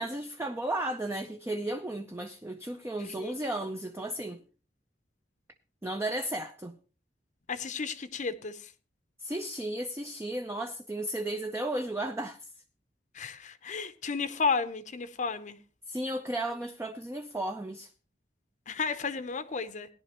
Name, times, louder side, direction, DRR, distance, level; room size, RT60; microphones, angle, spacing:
voice 1, 0.0-4.4 5.8-6.8 9.2-12.4 15.9-17.9, right 1 dB, 15° right, 0.5 m, -34 dB
voice 2, 7.5-8.7 13.1-15.6 18.7-19.9, left 5 dB, 45° left, 0.7 m, -33 dB
17.5 x 10.5 x 3.0 m
head